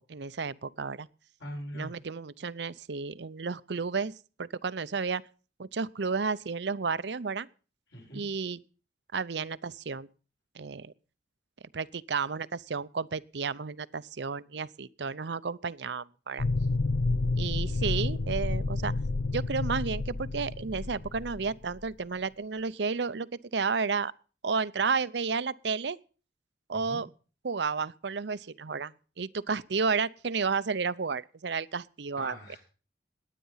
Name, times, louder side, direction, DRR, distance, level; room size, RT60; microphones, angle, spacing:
voice 1, 0.1-1.1 1.7-4.1 4.4-5.2 5.6-7.5 8.1-8.6 9.1-10.1 10.5-10.9 11.7-16.5 17.3-18.9 19.3-24.1 24.4-26.0 26.7-27.1 27.4-32.4, right 5 dB, 65° right, 0.6 m, -32 dB
voice 2, 1.4-1.9 7.9-8.2 26.7-27.0 32.2-32.6, equal, 65° left, 7.6 m, -41 dB
sound 1, 16.4-21.8, left 3 dB, 85° left, 0.7 m, -30 dB
19.5 x 9.3 x 5.6 m
head